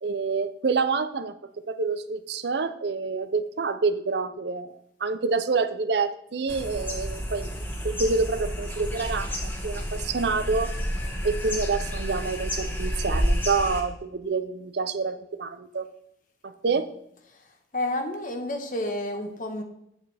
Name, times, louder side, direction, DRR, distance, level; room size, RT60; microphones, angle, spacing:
voice 1, 0.0-1.3 1.6-7.5 7.8-10.7 11.2-15.9 16.4-16.9, right 4 dB, 65° right, 11 dB, 0.6 m, -27 dB
sound 1, 6.5-13.8, equal, 10° left, 1.3 m, -30 dB
voice 2, 17.7-19.6, left 1 dB, 45° left, 5 dB, 1.2 m, -30 dB
9.0 x 8.2 x 3.4 m, 0.74 s
head